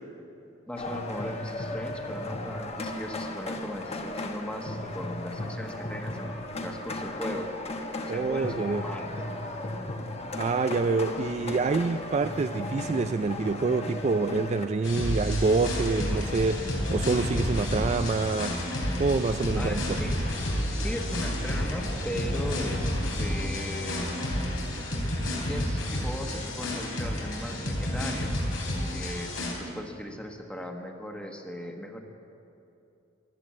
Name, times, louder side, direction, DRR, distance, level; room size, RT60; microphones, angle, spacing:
voice 1, 0.7-7.5 8.1-9.1 11.1-11.5 19.5-20.1 20.5-24.1 25.3-28.4 28.9-32.0, left 1 dB, 5° left, 3 dB, 1.3 m, -38 dB
sound 1, 0.8-14.7, left 1 dB, 35° left, 1.0 m, -35 dB
voice 2, 8.1-8.8 10.3-18.6 19.0-20.0, right 4 dB, 35° right, 8 dB, 0.3 m, -27 dB
sound 2, 14.8-29.5, left 1 dB, 85° left, 3.8 m, -30 dB
15.5 x 12.0 x 7.5 m, 2.8 s
head